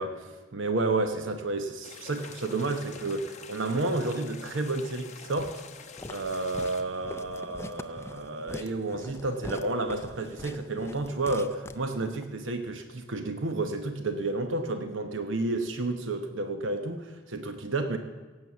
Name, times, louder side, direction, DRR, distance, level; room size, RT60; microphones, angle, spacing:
voice 1, 0.0-5.6 6.1-18.0, right 2 dB, 70° right, 7 dB, 1.0 m, -31 dB
sound 1, 1.8-6.8, left 6 dB, 35° left, 1.0 m, -47 dB
Walk footsteps, 5.4-12.3, left 2 dB, 15° left, 0.4 m, -43 dB
17.5 x 7.8 x 7.0 m, 1.3 s
head